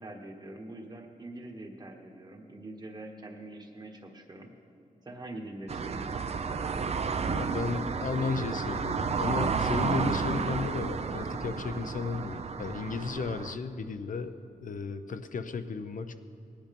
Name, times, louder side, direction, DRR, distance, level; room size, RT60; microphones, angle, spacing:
voice 1, 0.0-4.5 5.0-6.3, right 1 dB, 30° right, 3 dB, 1.3 m, -44 dB
sound 1, 5.7-13.5, right 5 dB, 45° right, 0.6 m, -31 dB
voice 2, 7.3-14.4 14.6-16.1, left 4 dB, 65° left, 10 dB, 0.7 m, -34 dB
19.0 x 10.0 x 5.3 m, 2.5 s
wide cardioid pair, 155°, 15 cm